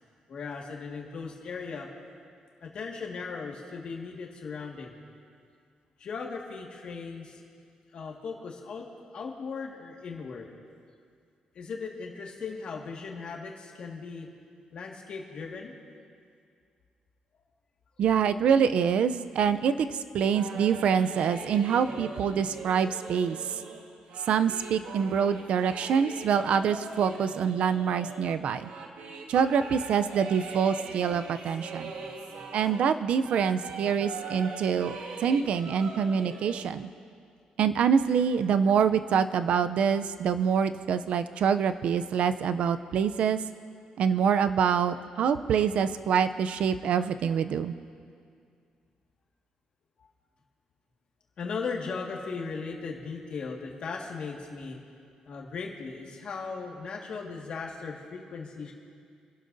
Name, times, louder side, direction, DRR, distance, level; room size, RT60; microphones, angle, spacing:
voice 1, 0.3-1.9 2.6-5.0 6.0-7.4 7.9-8.9 9.1-10.5 11.6-14.3 14.7-15.7 22.4-22.5 31.9-32.4 50.0-50.1 51.4-54.8 55.3-58.7, left 5 dB, 45° left, 0 dB, 1.8 m, -38 dB
voice 2, 18.0-23.6 24.3-28.7 29.3-31.9 32.5-35.0 35.2-36.9 37.6-43.4 44.0-47.7, right 7 dB, 60° right, 11 dB, 0.5 m, -25 dB
sound 1, 20.2-33.0 33.2-36.7, right 3 dB, 80° right, 1.5 m, -41 dB
28.0 x 12.0 x 2.7 m, 2.3 s
cardioid pair, 180°, 2 cm